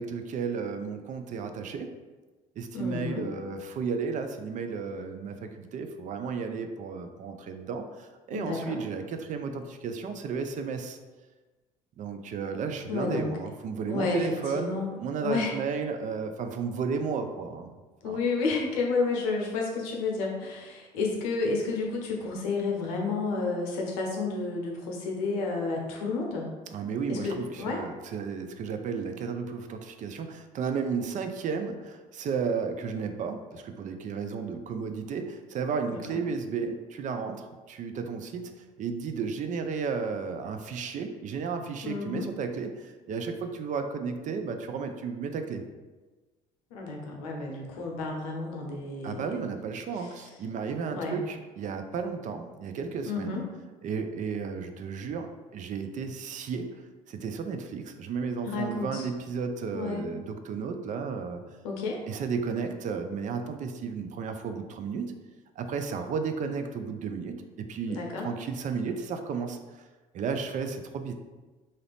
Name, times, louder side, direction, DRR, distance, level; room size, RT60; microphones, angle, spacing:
voice 1, 0.0-1.9 2.6-11.0 12.0-17.8 18.0-18.2 26.7-38.5 38.8-45.6 49.0-53.4 53.8-56.8 57.1-61.4 62.1-65.1 65.6-69.8 70.1-71.1, right 5 dB, 45° right, 7 dB, 0.4 m, -33 dB
voice 2, 2.7-3.3 8.3-8.8 12.9-13.3 13.9-14.9 15.2-15.5 18.0-26.5 27.1-27.8 35.9-36.2 41.8-42.3 46.7-49.3 49.9-50.1 50.9-51.2 53.1-53.4 58.4-59.1 59.7-60.0 61.6-62.0 67.9-68.3, left 3 dB, 80° left, 0 dB, 0.7 m, -31 dB
2.7 x 2.4 x 3.3 m, 1.2 s
hypercardioid pair, 60°, 18 cm